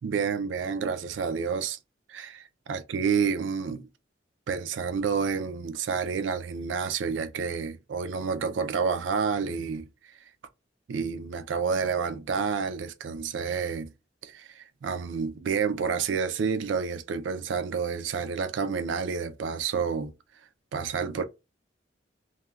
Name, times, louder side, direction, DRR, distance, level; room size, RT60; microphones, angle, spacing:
voice 1, 0.0-1.8 2.1-3.8 4.5-9.9 10.9-13.9 14.2-20.1 20.7-21.2, right 5 dB, 80° right, 0.4 m, -29 dB
3.2 x 2.2 x 2.2 m
head